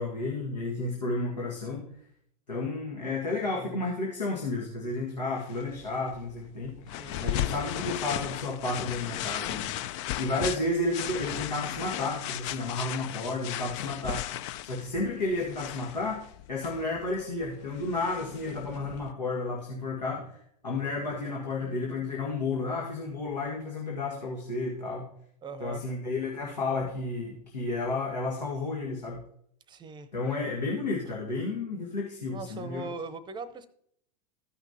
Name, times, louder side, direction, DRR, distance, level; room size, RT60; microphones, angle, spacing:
voice 1, 0.0-1.8 2.5-6.8 7.2-9.8 10.2-16.2 16.5-20.4 20.6-25.1 25.6-29.2 30.1-32.9, left 2 dB, 85° left, -2 dB, 1.8 m, -32 dB
sound 1, 5.4-19.1, left 13 dB, 45° left, 0.4 m, -36 dB
voice 2, 6.9-7.6 25.4-25.9 29.7-30.1 32.3-33.7, right 4 dB, 20° right, 15 dB, 0.7 m, -40 dB
14.5 x 5.9 x 2.8 m, 0.68 s
hypercardioid pair, 95°, 21 cm